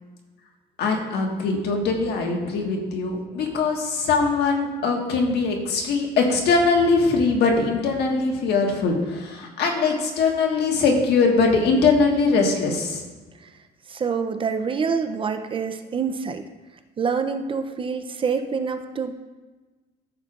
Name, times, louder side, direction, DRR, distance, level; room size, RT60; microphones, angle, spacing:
voice 1, 0.8-13.0, left 4 dB, 70° left, 1 dB, 1.5 m, -21 dB
voice 2, 13.9-16.5 17.0-19.1, right 5 dB, 30° right, 8 dB, 0.5 m, -26 dB
13.5 x 6.7 x 2.4 m, 1.2 s
cardioid pair, 135°, 18 cm